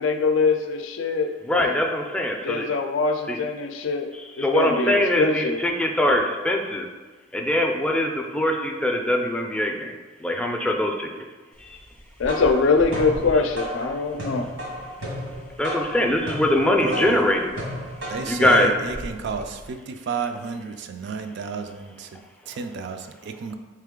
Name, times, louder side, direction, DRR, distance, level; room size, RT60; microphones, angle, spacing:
voice 1, 0.0-1.8 2.4-4.1 4.4-5.6 12.2-14.5, left 4 dB, 80° left, 6 dB, 0.4 m, -23 dB
voice 2, 1.5-2.7 3.3-3.4 4.1-6.9 7.3-9.9 10.2-11.3 11.6-11.8 15.6-17.5 18.3-18.7, left 1 dB, 5° left, 1 dB, 0.4 m, -22 dB
sound 1, 11.9-19.7, equal, 85° right, 1.5 m, -34 dB
voice 3, 16.8-17.3 18.0-23.6, right 4 dB, 60° right, 7 dB, 0.3 m, -32 dB
3.6 x 3.3 x 3.6 m, 1.3 s
head